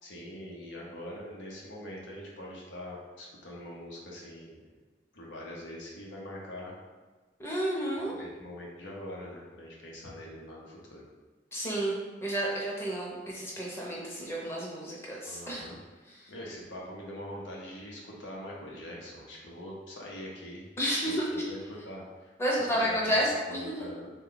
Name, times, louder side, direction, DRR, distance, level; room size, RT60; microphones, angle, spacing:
voice 1, 0.0-4.6 5.1-6.8 8.1-11.0 15.2-15.8 16.3-20.7 21.1-23.2 23.5-24.1, left 1 dB, 90° left, -3 dB, 0.8 m, -43 dB
voice 2, 7.4-8.1 11.5-11.9 12.2-15.7 20.8-21.4 22.4-23.7, equal, 15° left, -5 dB, 0.7 m, -31 dB
3.4 x 2.3 x 3.8 m, 1.3 s
head